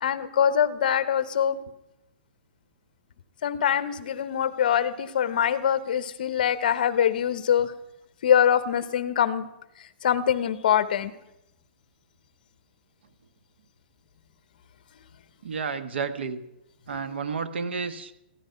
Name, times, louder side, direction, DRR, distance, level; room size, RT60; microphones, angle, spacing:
voice 1, 0.0-1.6 3.4-7.7 8.2-9.5 10.0-11.1, left 9 dB, 50° left, 14 dB, 1.0 m, -23 dB
voice 2, 15.4-16.4 16.9-18.1, right 5 dB, 75° right, 12 dB, 1.4 m, -31 dB
15.5 x 12.0 x 5.8 m, 0.86 s
hypercardioid pair, 175°, 6 cm